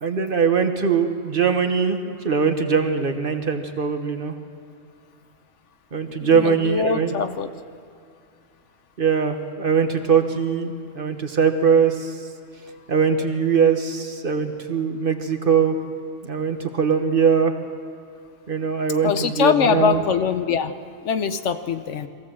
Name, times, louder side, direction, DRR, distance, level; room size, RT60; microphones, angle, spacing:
voice 1, 0.0-4.3 5.9-7.2 9.0-12.2 12.9-15.8 16.2-17.5 18.5-20.0, right 6 dB, 45° right, 6 dB, 1.3 m, -21 dB
voice 2, 6.2-7.5 19.0-20.7 21.0-22.1, left 7 dB, 70° left, 10 dB, 1.1 m, -22 dB
22.5 x 16.0 x 7.5 m, 2.3 s
omnidirectional pair, 1.3 m